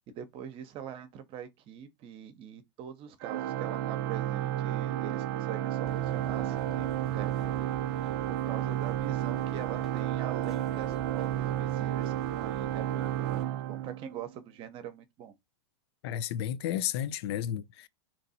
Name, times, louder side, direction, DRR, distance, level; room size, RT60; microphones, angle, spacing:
voice 1, 0.1-7.7 8.3-15.3, right 9 dB, 40° right, 0.8 m, -43 dB
Organ, 3.2-14.4, right 12 dB, 60° right, 0.5 m, -32 dB
sound 1, 5.8-13.4, right 2 dB, 5° right, 1.0 m, -48 dB
voice 2, 16.0-17.9, left 10 dB, 65° left, 0.4 m, -32 dB
3.0 x 2.6 x 4.2 m
supercardioid pair, 135°, 15 cm